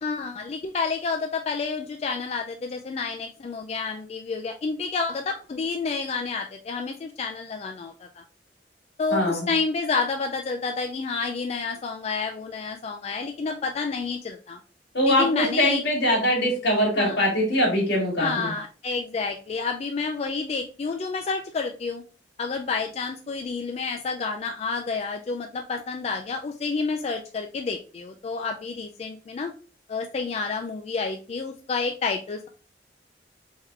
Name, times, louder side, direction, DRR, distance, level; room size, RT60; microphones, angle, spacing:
voice 1, 0.0-8.1 9.0-14.6 15.0-15.8 17.0-17.2 18.2-22.0 22.4-29.5 29.9-32.5, left 4 dB, 35° left, 3 dB, 0.3 m, -29 dB
voice 2, 9.1-9.5 14.9-18.5, equal, 75° left, -1 dB, 1.8 m, -22 dB
3.6 x 3.4 x 3.1 m, 0.37 s
head